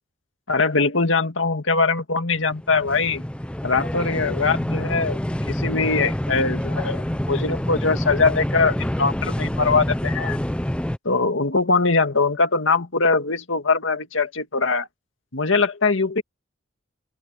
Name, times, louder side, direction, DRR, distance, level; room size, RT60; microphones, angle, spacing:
voice 1, 0.5-3.2 3.6-5.2 5.4-10.4 11.0-14.9 15.3-16.2, left 4 dB, 80° left, 2.0 m, -22 dB
sound 1, 2.3-11.0, equal, 5° left, 0.4 m, -27 dB
open air
head